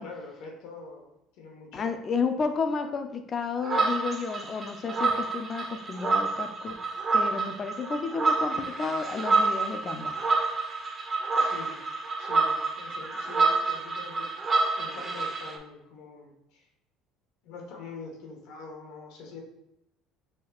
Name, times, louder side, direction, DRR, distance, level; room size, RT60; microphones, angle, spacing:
voice 1, 0.0-1.9 11.4-11.8 12.2-16.7 17.4-19.4, left 4 dB, 75° left, 0 dB, 1.1 m, -44 dB
voice 2, 1.7-6.8 7.1-10.2, left 5 dB, 35° left, 7 dB, 0.5 m, -31 dB
sound 1, 3.6-15.6, right 3 dB, 30° right, 0.8 m, -28 dB
5.3 x 3.5 x 2.4 m, 0.84 s
supercardioid pair, 100°, 0 cm